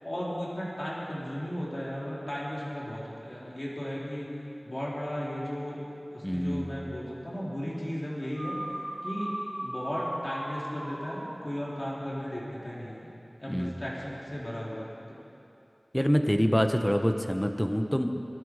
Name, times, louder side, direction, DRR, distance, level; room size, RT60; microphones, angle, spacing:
voice 1, 0.0-4.3 4.6-5.8 6.1-8.6 9.0-9.3 9.6-13.1 13.4-15.2, equal, 50° left, -6 dB, 4.2 m, -35 dB
voice 2, 6.2-6.8 13.5-13.8 15.9-18.3, equal, 10° left, 6 dB, 1.0 m, -26 dB
sound 1, 8.3-12.9, right 1 dB, 45° right, 2.6 m, -38 dB
20.5 x 12.5 x 4.9 m, 2.8 s
wide cardioid pair, 50°, 0 cm